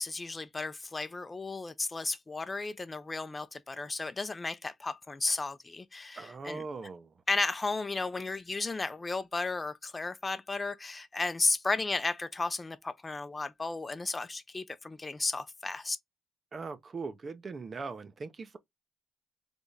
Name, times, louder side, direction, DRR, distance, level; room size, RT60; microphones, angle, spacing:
voice 1, 0.0-6.6 7.3-16.0, left 3 dB, 25° left, 0.6 m, -34 dB
voice 2, 6.2-7.1 16.5-18.6, right 4 dB, 40° right, 0.8 m, -40 dB
3.5 x 3.4 x 4.1 m
cardioid pair, 80°, 0 cm